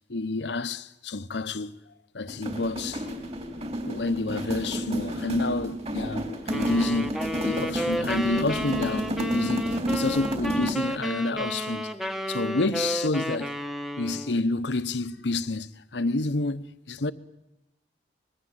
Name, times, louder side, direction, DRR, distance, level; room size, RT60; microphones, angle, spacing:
voice 1, 0.1-1.8 2.1-3.1 3.5-11.9 12.3-13.5 14.0-17.1, left 2 dB, 80° left, 1.0 m, -29 dB
sound 1, 2.3-11.0, equal, 35° right, 3.7 m, -31 dB
sound 2, 6.5-14.4, equal, ahead, 1.0 m, -32 dB
25.5 x 21.5 x 8.0 m
head